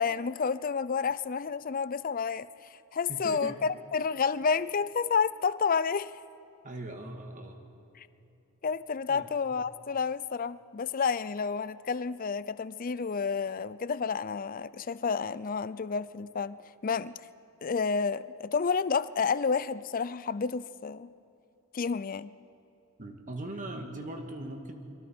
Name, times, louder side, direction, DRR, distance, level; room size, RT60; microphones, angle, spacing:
voice 1, 0.0-6.2 8.0-8.1 8.6-17.2 17.6-21.1 21.7-22.3, left 5 dB, 40° left, 16 dB, 0.5 m, -30 dB
voice 2, 3.1-3.6 6.6-7.6 9.1-9.3 23.0-24.7, right 1 dB, 35° right, 3 dB, 1.8 m, -40 dB
29.5 x 22.5 x 4.4 m, 2.8 s
head